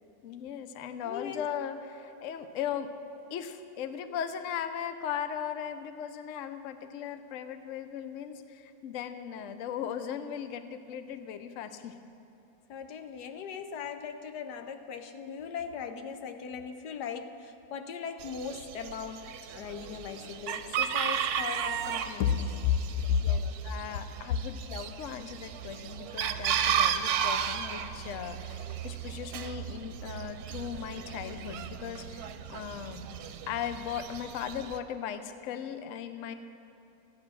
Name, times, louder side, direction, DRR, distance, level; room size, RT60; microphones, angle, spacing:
voice 1, 0.2-2.9 3.3-12.0 23.1-33.0 33.5-36.3, left 8 dB, 60° left, 9 dB, 0.9 m, -38 dB
voice 2, 1.0-1.5 12.7-19.3 19.5-22.8 23.1-23.4 32.3-32.4, left 7 dB, 85° left, 7 dB, 1.3 m, -35 dB
Chicken rooster, 18.2-34.8, right 8 dB, 70° right, 1.1 m, -34 dB
15.0 x 8.7 x 6.1 m, 2.8 s
omnidirectional pair, 1.7 m